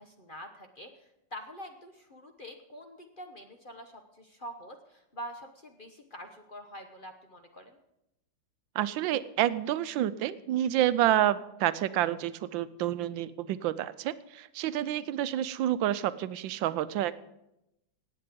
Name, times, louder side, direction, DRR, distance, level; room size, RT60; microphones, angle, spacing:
voice 1, 0.0-7.8, equal, 35° left, 5 dB, 0.9 m, -46 dB
voice 2, 8.7-17.2, right 12 dB, 90° right, 15 dB, 1.4 m, -29 dB
17.5 x 8.6 x 5.2 m, 0.85 s
omnidirectional pair, 2.0 m